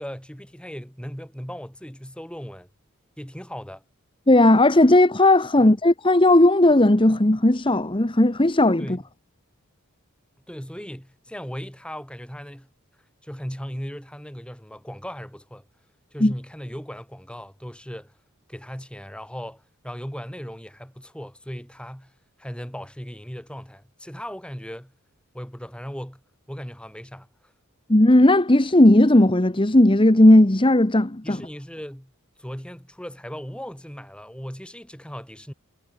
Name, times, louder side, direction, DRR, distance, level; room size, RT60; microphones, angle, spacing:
voice 1, 0.0-2.7 3.2-3.8 5.6-5.7 8.8-9.0 10.5-12.7 13.2-15.7 16.1-18.1 18.5-22.1 22.4-24.9 25.3-26.2 26.5-27.5 31.2-32.1 32.4-35.5, equal, 5° left, 5.8 m, -37 dB
voice 2, 4.3-9.0 16.2-16.3 27.9-31.4, left 1 dB, 25° left, 1.1 m, -16 dB
head